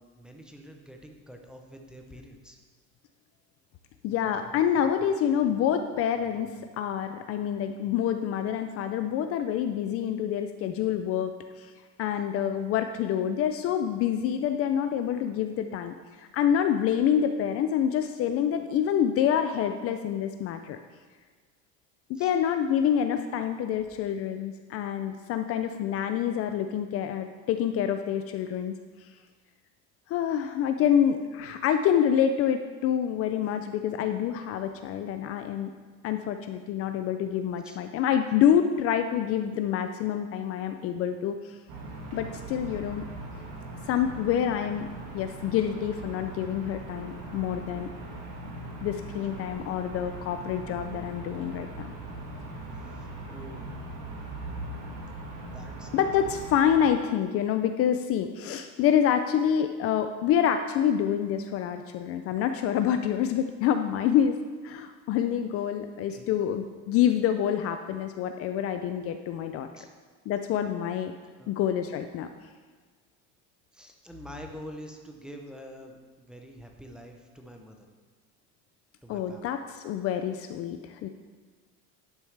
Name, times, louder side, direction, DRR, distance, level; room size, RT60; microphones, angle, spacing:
voice 1, 0.0-2.6 22.1-22.3 37.6-37.8 52.7-53.7 55.5-55.9 56.2-56.3 66.1-66.3 69.8-69.9 71.4-71.5 73.7-77.9 79.0-79.6, equal, ahead, 2 dB, 0.6 m, -46 dB
voice 2, 4.0-11.7 12.0-20.8 22.1-28.7 30.1-35.7 36.0-41.6 42.1-43.0 43.9-44.9 45.1-47.9 48.8-51.9 55.9-64.4 64.6-69.7 70.3-71.1 71.5-72.3 79.1-81.1, left 9 dB, 45° left, 8 dB, 0.4 m, -27 dB
sound 1, 41.7-56.9, right 2 dB, 70° right, 1.7 m, -40 dB
11.0 x 6.2 x 3.3 m, 1.5 s
cardioid pair, 150°, 33 cm